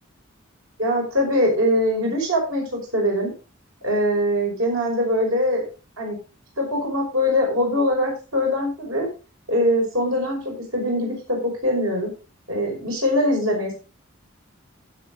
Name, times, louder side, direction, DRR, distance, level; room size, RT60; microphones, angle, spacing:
voice 1, 0.8-3.3 3.8-5.6 6.0-6.2 6.6-9.1 9.5-12.1 12.5-13.7, equal, 85° right, -1 dB, 5.4 m, -22 dB
15.5 x 7.0 x 3.6 m, 0.32 s
head